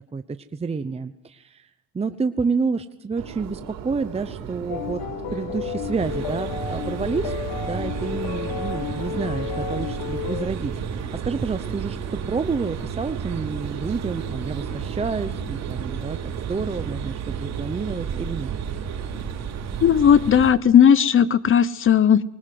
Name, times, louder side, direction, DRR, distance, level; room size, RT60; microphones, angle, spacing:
voice 1, 0.1-1.7 1.9-5.0 5.3-7.3 7.6-12.0 12.2-16.2 16.5-18.5, right 4 dB, 20° right, 10 dB, 0.9 m, -29 dB
Subway metro underground, 3.2-20.5, right 8 dB, 75° right, 4.4 m, -36 dB
sound 1, 4.7-10.5, left 9 dB, 75° left, 2.2 m, -32 dB
sound 2, 6.0-20.5, right 7 dB, 50° right, 3.2 m, -33 dB
voice 2, 19.8-22.2, left 8 dB, 40° left, 18 dB, 1.0 m, -16 dB
24.5 x 20.5 x 7.9 m, 0.89 s
cardioid pair, 105°, 34 cm